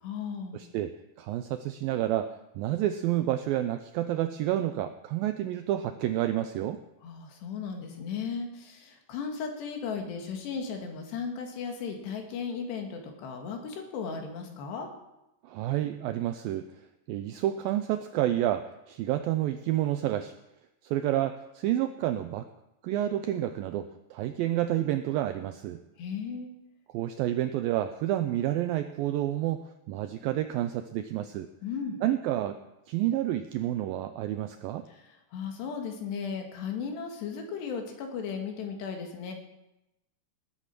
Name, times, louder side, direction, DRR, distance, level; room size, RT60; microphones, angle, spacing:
voice 1, 0.0-0.6 7.0-14.9 26.0-26.5 31.6-32.0 34.9-39.3, left 6 dB, 85° left, 3 dB, 4.0 m, -36 dB
voice 2, 0.5-6.8 15.4-16.7 17.1-20.3 20.8-22.5 22.8-25.8 26.9-31.5 32.0-32.6 32.9-34.9, right 13 dB, 85° right, 9 dB, 2.0 m, -29 dB
19.0 x 8.2 x 6.0 m, 0.91 s
omnidirectional pair, 4.8 m